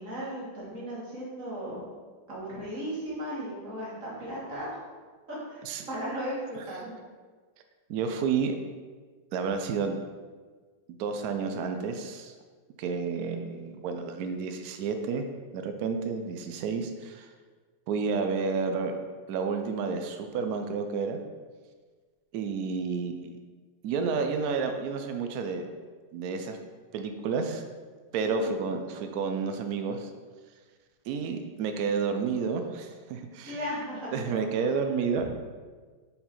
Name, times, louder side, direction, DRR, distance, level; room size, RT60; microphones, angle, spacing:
voice 1, 0.0-1.9 2.3-4.8 5.5-7.0 28.2-28.6 33.4-34.5, equal, 45° right, -7 dB, 2.1 m, -36 dB
voice 2, 7.9-8.5 9.3-10.0 10.9-12.3 12.8-15.2 15.5-17.3 17.9-19.0 19.3-21.2 22.3-23.4 23.8-25.7 26.1-26.6 26.9-27.7 28.1-30.1 31.1-33.6 34.1-35.4, right 5 dB, 85° right, 6 dB, 0.8 m, -30 dB
5.3 x 4.4 x 4.3 m, 1.5 s
omnidirectional pair, 2.1 m